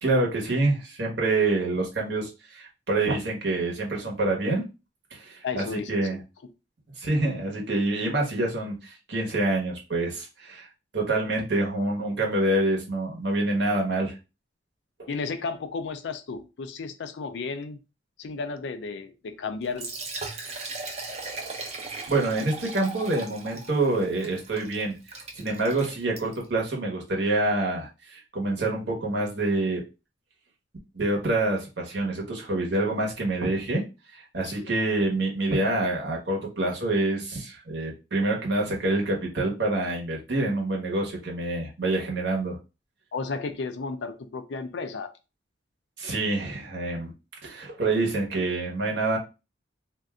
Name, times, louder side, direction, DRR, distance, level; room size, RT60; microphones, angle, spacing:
voice 1, 0.0-4.7 5.1-6.2 7.0-10.7 10.9-14.2 15.0-15.1 22.1-25.0 25.4-29.8 30.9-33.8 34.1-42.6 46.0-47.1 47.4-49.2, right 2 dB, 65° right, -1 dB, 1.0 m, -26 dB
voice 2, 5.4-6.0 15.1-17.8 18.2-19.9 34.4-34.7 43.1-45.1, left 4 dB, 70° left, 9 dB, 0.4 m, -33 dB
Liquid, 19.6-26.5, right 3 dB, 35° right, 0.6 m, -38 dB
2.6 x 2.2 x 3.6 m, 0.29 s
head